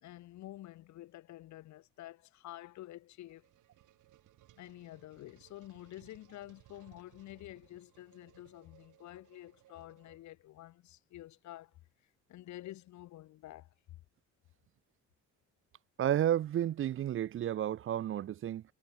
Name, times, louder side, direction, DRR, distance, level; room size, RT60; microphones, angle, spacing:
voice 1, 0.0-3.5 4.6-11.8 12.3-14.0, left 15 dB, 70° left, 0.6 m, -49 dB
sound 1, 2.9-10.6, right 14 dB, 85° right, 7.1 m, -64 dB
voice 2, 16.0-18.6, right 11 dB, 45° right, 0.4 m, -31 dB
cardioid pair, 90°, 30 cm